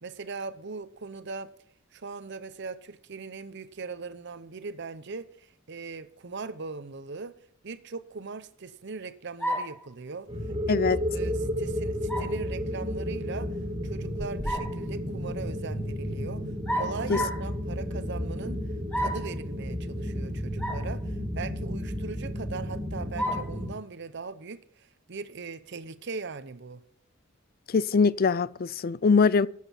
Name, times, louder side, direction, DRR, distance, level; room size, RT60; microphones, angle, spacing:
voice 1, 0.0-1.5 1.9-7.3 7.6-10.3 10.7-10.8 11.1-13.5 13.8-16.5 16.7-18.6 19.0-26.8, right 4 dB, 60° right, 0.8 m, -39 dB
sound 1, 9.4-9.8 12.1-12.4 14.2-14.8 16.7-17.5 18.9-19.3 20.6-20.9 21.4-21.5 23.2-23.5, equal, 10° left, 3.1 m, -31 dB
sound 2, 10.3-23.7, equal, 25° right, 2.0 m, -32 dB
voice 2, 27.7-29.5, left 5 dB, 50° left, 0.5 m, -22 dB
13.5 x 7.5 x 5.9 m
head